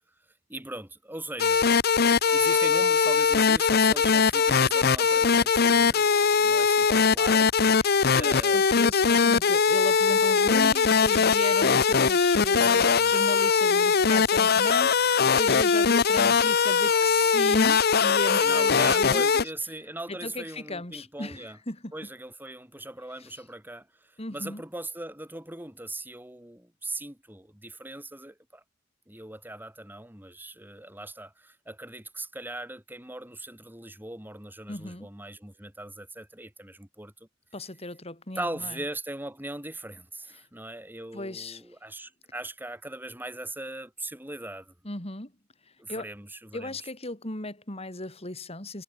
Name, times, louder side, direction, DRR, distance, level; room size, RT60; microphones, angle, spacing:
voice 1, 0.5-1.6 2.0-7.5 8.1-8.6 12.5-13.1 16.2-16.5 18.2-21.6 21.9-28.6 29.1-37.3 38.3-44.7 45.8-46.9, right 2 dB, 10° right, 4.7 m, -39 dB
sound 1, 1.4-19.4, left 5 dB, 55° left, 0.8 m, -21 dB
voice 2, 7.9-19.4 20.2-21.9 24.2-24.6 34.7-35.1 37.5-38.7 41.1-41.6 44.8-45.3 45.9-46.1 46.5-48.8, left 2 dB, 30° left, 4.5 m, -35 dB
head